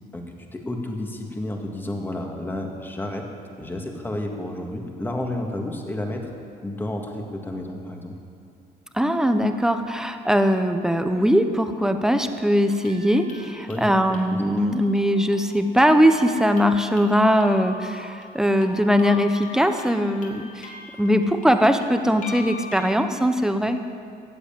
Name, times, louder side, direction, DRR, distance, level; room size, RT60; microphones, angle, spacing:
voice 1, 0.1-3.3 3.6-6.3 6.6-8.1 13.7-13.8 14.1-14.4, left 1 dB, 10° left, 2 dB, 1.9 m, -31 dB
voice 2, 8.9-20.7 21.0-23.8, equal, 5° right, 7 dB, 0.9 m, -20 dB
sound 1, 12.7-22.8, left 4 dB, 50° left, 2.6 m, -42 dB
14.5 x 8.0 x 9.1 m, 2.4 s
cardioid pair, 110°, 17 cm